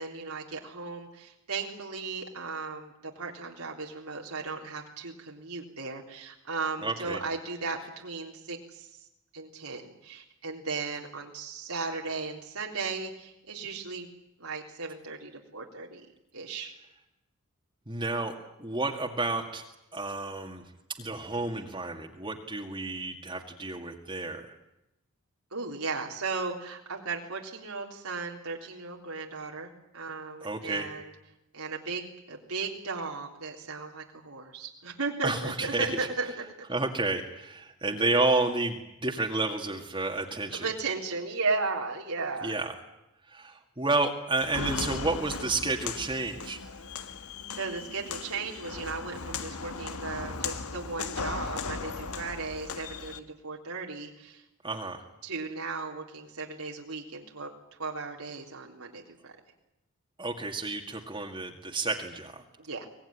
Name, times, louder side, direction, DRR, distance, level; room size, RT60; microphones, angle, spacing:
voice 1, 0.0-9.0 9.3-14.1 14.4-16.1 16.3-16.8 25.5-31.1 31.5-36.5 40.5-42.6 47.6-54.4 55.2-57.5 57.8-59.3 62.6-62.9, right 4 dB, 85° right, 0 dB, 3.6 m, -36 dB
voice 2, 6.8-7.2 17.9-19.6 19.9-20.6 21.0-24.5 30.4-30.9 35.2-36.1 36.7-40.7 42.4-42.7 43.3-46.6 54.6-55.0 60.2-62.4, right 3 dB, 20° right, 2 dB, 2.1 m, -31 dB
Walk footsteps, 44.4-53.2, left 4 dB, 80° left, 1.6 m, -37 dB
24.0 x 19.5 x 10.0 m, 0.88 s
head